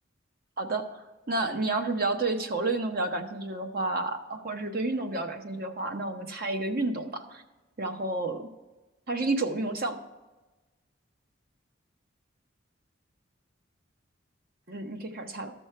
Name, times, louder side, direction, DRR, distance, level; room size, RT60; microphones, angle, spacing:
voice 1, 0.6-7.4 7.8-8.4 9.1-10.0 14.7-15.5, right 2 dB, 50° right, 6 dB, 0.8 m, -30 dB
13.5 x 6.2 x 4.5 m, 1.2 s
head